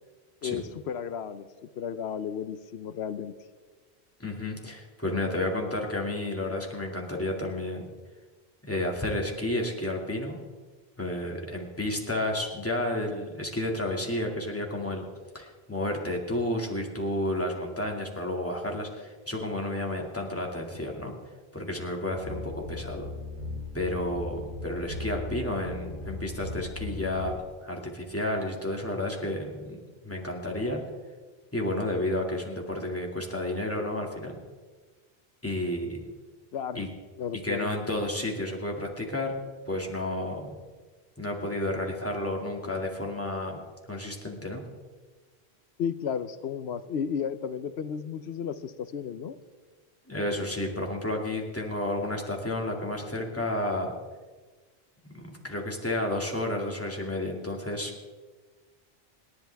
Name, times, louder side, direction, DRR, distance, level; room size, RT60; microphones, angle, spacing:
voice 1, 0.4-1.5 1.8-3.3 36.5-36.9 37.2-37.7 45.8-49.4, left 7 dB, 80° left, 12 dB, 1.0 m, -33 dB
voice 2, 4.2-7.9 8.7-10.4 11.0-15.1 15.3-21.1 21.5-23.1 23.7-29.8 30.0-30.8 31.5-34.4 35.4-36.0 36.8-36.9 37.4-39.4 39.7-40.6 41.2-43.6 43.9-44.7 50.1-53.9 55.1-57.9, left 1 dB, 15° left, 0 dB, 2.3 m, -31 dB
sound 1, 22.1-27.3, left 3 dB, 80° right, 3.9 m, -38 dB
27.0 x 11.0 x 3.5 m, 1.4 s
omnidirectional pair, 1.1 m